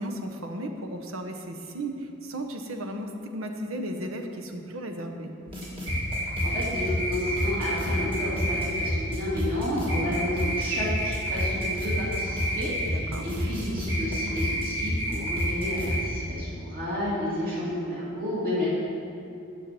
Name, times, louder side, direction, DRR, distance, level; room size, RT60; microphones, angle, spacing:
voice 1, 0.0-5.3 9.9-10.2 12.8-13.3 18.6-18.7, right 1 dB, 80° right, 5 dB, 1.0 m, -35 dB
sound 1, 5.5-16.0, equal, 25° right, 2.0 m, -28 dB
voice 2, 6.4-18.7, left 1 dB, 45° right, -8 dB, 2.7 m, -31 dB
9.0 x 5.7 x 7.5 m, 2.7 s
head